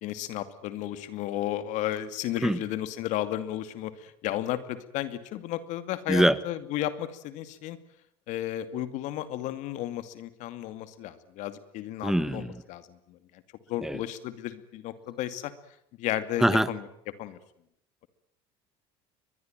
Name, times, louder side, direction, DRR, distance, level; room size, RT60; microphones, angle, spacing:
voice 1, 0.0-7.8 8.3-13.4 13.7-15.5 16.0-16.8 17.2-17.4, left 13 dB, 65° left, 12 dB, 2.4 m, -33 dB
voice 2, 12.0-12.6 13.8-14.0 16.4-16.7, right 1 dB, 5° right, 15 dB, 1.5 m, -23 dB
23.5 x 20.0 x 9.1 m, 0.74 s
supercardioid pair, 95°, 13 cm